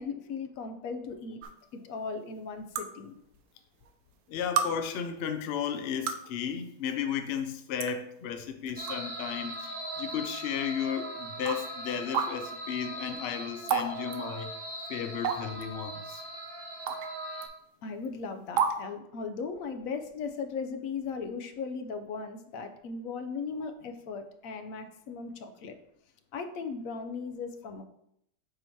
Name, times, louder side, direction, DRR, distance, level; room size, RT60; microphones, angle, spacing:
voice 1, 0.0-1.4 1.7-3.1 17.8-25.8 26.3-27.8, left 5 dB, 65° left, 7 dB, 0.9 m, -37 dB
sound 1, 1.4-1.5 2.8-2.9 3.9-4.0 4.6-4.7 5.8-6.3 7.3-7.4 7.8-7.9 8.7-9.0 9.5-9.6 10.5-10.6 11.5-11.6 12.1-12.3 13.7-13.9 14.1-14.2 15.2-15.6 16.9-17.1 17.4-17.5 18.6-18.8, right 7 dB, 70° right, 0.8 m, -29 dB
voice 2, 4.3-14.5 14.9-16.2, left 8 dB, 80° left, 7 dB, 0.5 m, -34 dB
sound 2, 8.7-17.5, right 1 dB, 25° right, 0.6 m, -40 dB
7.7 x 2.9 x 4.4 m, 0.75 s
omnidirectional pair, 1.8 m